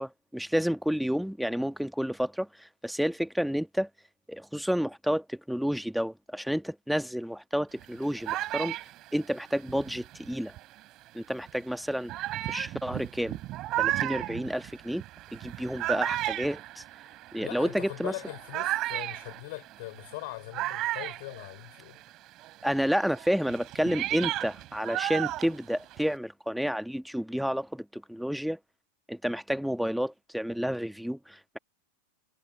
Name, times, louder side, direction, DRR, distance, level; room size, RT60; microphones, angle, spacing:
voice 1, 0.0-3.9 4.3-8.8 9.1-10.5 11.1-12.1 12.4-13.4 13.8-15.0 15.3-16.8 17.3-18.1 22.6-28.6 29.1-31.6, equal, ahead, 1.7 m, -30 dB
sound 1, 7.8-10.8 11.5-11.6 12.1-22.1 22.4-26.2, right 16 dB, 35° right, 4.8 m, -34 dB
voice 2, 17.4-22.0, left 23 dB, 50° left, 4.9 m, -41 dB
figure-of-eight pair, 90°, 0 cm